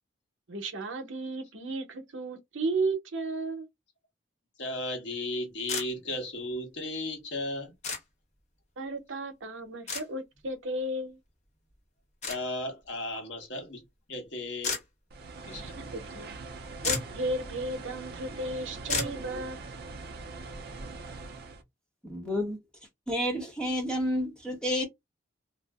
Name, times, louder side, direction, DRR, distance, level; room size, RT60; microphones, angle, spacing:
voice 1, 0.5-3.7 8.8-11.2 15.5-16.3 16.8-19.6, right 2 dB, 75° right, 0.8 m, -34 dB
voice 2, 4.6-7.7 12.3-13.8 14.1-14.8 15.5-15.6, left 1 dB, 60° left, 1.0 m, -35 dB
sound 1, 5.7-5.9 7.8-8.0 9.9-10.0 12.2-12.4 14.6-14.8 16.5-16.6 16.8-17.2 18.9-19.2, left 4 dB, 35° left, 0.8 m, -31 dB
sound 2, 15.1-21.6, right 3 dB, 50° right, 0.5 m, -42 dB
voice 3, 22.0-22.6 23.1-24.9, equal, 5° left, 0.8 m, -30 dB
2.5 x 2.1 x 3.4 m
head